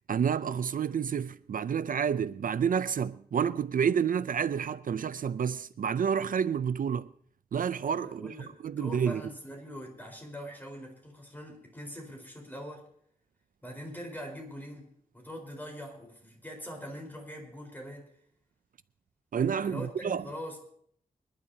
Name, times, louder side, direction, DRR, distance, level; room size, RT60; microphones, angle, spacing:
voice 1, 0.1-7.1 7.5-8.3 8.6-9.2 19.3-20.2, right 7 dB, 65° right, 0.4 m, -29 dB
voice 2, 8.0-12.9 13.6-18.1 19.6-20.6, equal, 10° left, 4.3 m, -43 dB
25.5 x 11.5 x 2.8 m
wide cardioid pair, 115°, 15 cm